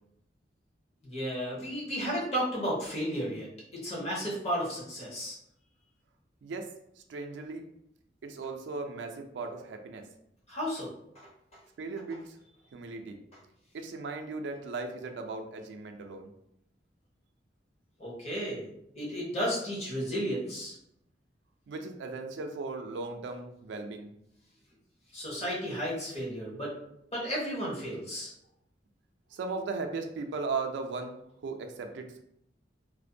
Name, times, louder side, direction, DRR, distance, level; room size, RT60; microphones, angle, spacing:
voice 1, 1.0-3.5 3.7-5.4 10.5-10.9 18.0-18.7 18.9-20.7 25.1-26.7 27.1-28.3, equal, 35° left, -5 dB, 0.9 m, -33 dB
voice 2, 6.4-7.6 8.2-10.1 11.8-12.4 12.7-13.2 13.7-16.3 21.7-24.1 29.3-32.2, right 3 dB, 75° right, 5 dB, 0.3 m, -37 dB
2.5 x 2.1 x 2.6 m, 0.76 s
head